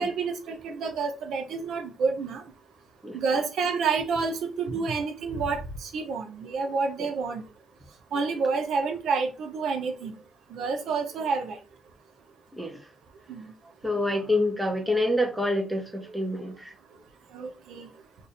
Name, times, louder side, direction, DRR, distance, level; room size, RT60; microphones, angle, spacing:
voice 1, 0.0-2.4 3.1-7.4 8.1-10.1 10.5-11.6 13.3-13.4 17.3-17.9, right 4 dB, 75° right, 0.6 m, -29 dB
voice 2, 3.0-3.4 7.0-7.1 12.5-12.8 13.8-16.7, left 1 dB, 5° right, 0.9 m, -27 dB
2.6 x 2.6 x 4.2 m
cardioid pair, 90°, 0 cm